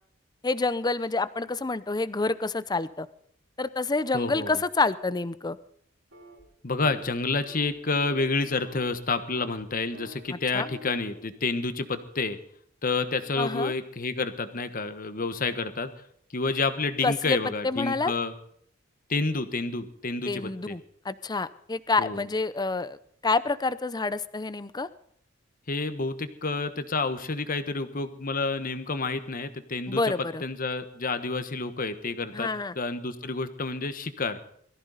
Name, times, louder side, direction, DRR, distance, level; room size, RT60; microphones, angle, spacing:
voice 1, 0.4-3.1 3.6-5.6 10.3-10.7 13.4-13.7 17.0-17.4 17.6-18.1 20.3-23.0 23.2-24.9 29.9-30.4 32.3-32.8, left 3 dB, 20° left, 15 dB, 0.6 m, -28 dB
voice 2, 4.1-4.6 6.6-12.4 12.8-15.9 16.3-18.3 19.1-20.8 22.0-22.2 25.7-30.1 30.4-32.5 32.7-34.4, left 3 dB, 45° left, 10 dB, 1.3 m, -29 dB
sound 1, 6.1-6.4 6.7-7.1 7.4-7.7 8.0-9.0 9.3-9.6 9.9-10.2 10.6-11.2, right 1 dB, 85° right, 4.2 m, -48 dB
22.0 x 14.5 x 4.0 m, 0.65 s
head